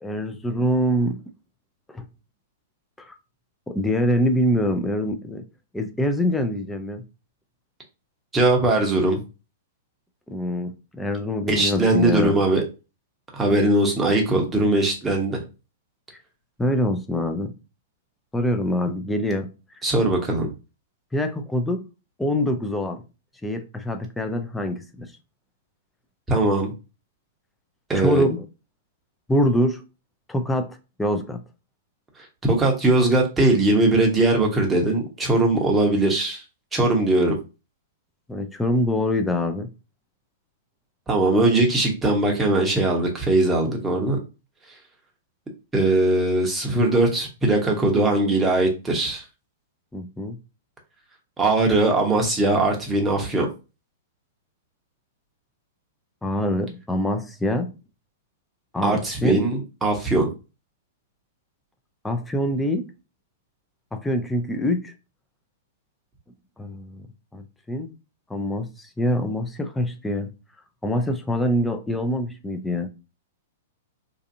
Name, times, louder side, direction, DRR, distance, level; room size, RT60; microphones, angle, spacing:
voice 1, 0.0-1.2 1.9-2.0 3.1-3.2 3.7-5.5 5.7-7.0 10.3-12.4 16.6-17.5 18.3-19.5 21.1-21.9 22.2-23.0 23.4-25.1 28.0-28.4 29.3-29.8 30.3-31.4 38.3-39.7 49.9-50.4 56.2-57.7 58.7-59.4 62.0-62.9 63.9-64.9 66.6-67.1 67.3-67.9 68.3-70.3 70.8-72.9, left 1 dB, 5° left, 0.4 m, -25 dB
voice 2, 8.3-9.2 11.5-12.6 13.3-15.4 19.8-20.5 26.3-26.7 27.9-28.3 32.4-36.4 36.7-37.3 41.1-44.2 45.7-49.2 51.4-53.5 58.8-60.3, right 2 dB, 15° right, 0.9 m, -20 dB
2.6 x 2.4 x 2.6 m
hypercardioid pair, 110°, 0 cm